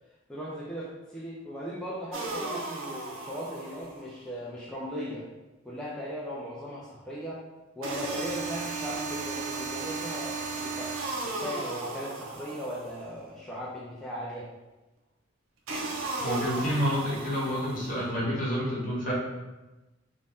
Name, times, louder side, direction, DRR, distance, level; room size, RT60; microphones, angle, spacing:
voice 1, 0.3-5.3 5.6-7.4 7.8-10.9 11.2-14.5, equal, 5° left, -7 dB, 0.3 m, -38 dB
sound 1, 2.1-4.1 7.8-13.1 15.7-18.1, right 3 dB, 85° right, 0.4 m, -35 dB
voice 2, 16.1-19.1, equal, 45° left, -6 dB, 0.9 m, -29 dB
2.5 x 2.1 x 3.4 m, 1.1 s
head